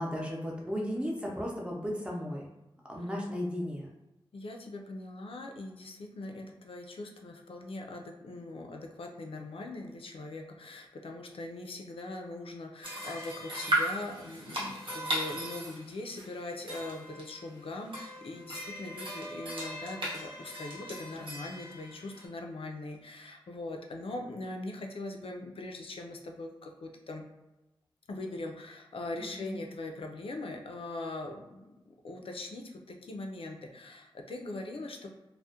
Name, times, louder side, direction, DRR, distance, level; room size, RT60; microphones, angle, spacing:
voice 1, 0.0-2.4 2.9-3.9 29.2-29.5, equal, 10° right, -2 dB, 0.6 m, -35 dB
voice 2, 4.3-27.2 28.1-35.1, left 2 dB, 75° left, 2 dB, 0.4 m, -41 dB
sound 1, 12.8-22.3, right 1 dB, 65° right, 0.8 m, -37 dB
2.3 x 2.1 x 2.7 m, 0.98 s
wide cardioid pair, 95°, 9 cm